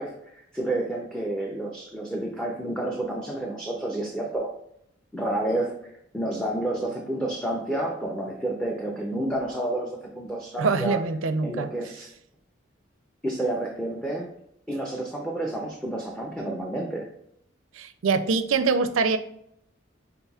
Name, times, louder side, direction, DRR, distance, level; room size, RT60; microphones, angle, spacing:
voice 1, 0.0-4.6 5.1-11.0 11.4-12.1 13.2-14.3 14.7-17.1, right 1 dB, 5° left, -1 dB, 0.5 m, -30 dB
voice 2, 10.6-11.7 17.8-19.2, right 4 dB, 85° right, 10 dB, 0.4 m, -24 dB
5.5 x 3.8 x 2.3 m, 0.72 s
head